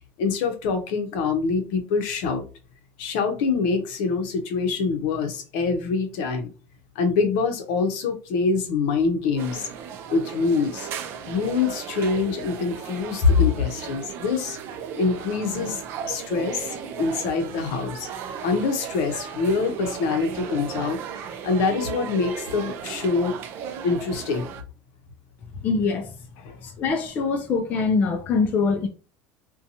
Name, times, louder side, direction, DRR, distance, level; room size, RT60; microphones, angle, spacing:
voice 1, 0.2-2.4 3.0-6.5 7.0-9.7 10.1-10.9 11.3-14.6 15.0-15.8 16.1-18.1 18.4-21.0 21.4-23.3 23.8-24.5 26.4-26.6, left 4 dB, 70° left, 0.6 m, -24 dB
sound 1, 9.4-24.6, right 8 dB, 45° right, 0.4 m, -36 dB
voice 2, 25.6-26.1 26.6-28.9, left 4 dB, 30° left, 0.3 m, -23 dB
2.7 x 2.2 x 2.6 m
cardioid pair, 155°, 6 cm